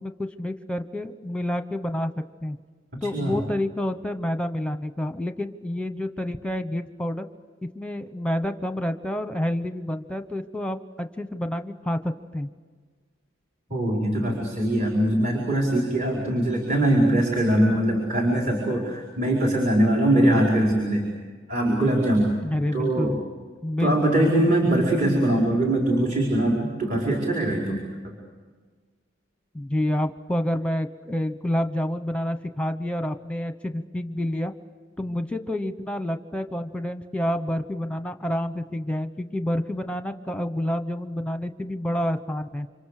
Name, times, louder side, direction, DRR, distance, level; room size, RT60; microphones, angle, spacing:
voice 1, 0.0-2.1 2.4-2.6 3.0-7.3 7.7-12.5 22.4-23.2 23.6-24.5 29.5-34.5 35.0-42.7, left 1 dB, 5° left, 9 dB, 1.1 m, -28 dB
voice 2, 3.0-3.4 13.7-21.0 21.5-22.3 22.7-23.1 23.8-27.8, right 1 dB, 40° right, -1 dB, 4.7 m, -22 dB
29.5 x 26.0 x 6.7 m, 1.5 s
head